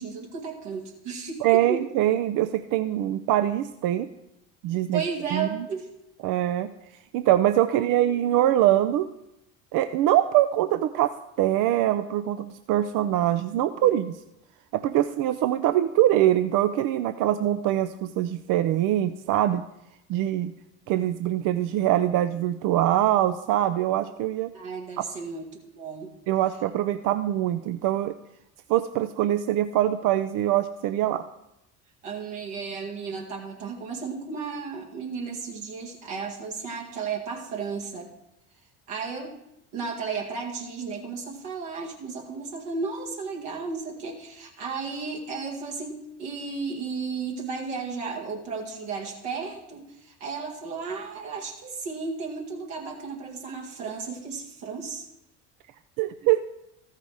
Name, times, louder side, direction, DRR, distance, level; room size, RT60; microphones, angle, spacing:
voice 1, 0.0-1.8 4.9-5.9 7.7-8.2 13.8-14.0 24.5-25.5 25.8-26.1 32.0-38.1 38.9-39.4 39.7-55.1, right 5 dB, 75° right, -2 dB, 1.9 m, -34 dB
voice 2, 1.4-4.1 4.6-5.0 5.3-5.7 6.2-6.7 7.1-9.1 9.7-14.2 14.7-19.6 20.1-20.5 20.9-24.5 26.3-28.1 28.7-31.3 56.0-56.4, right 13 dB, 55° right, 10 dB, 0.5 m, -23 dB
13.5 x 5.7 x 4.8 m, 0.85 s
hypercardioid pair, 65°, 38 cm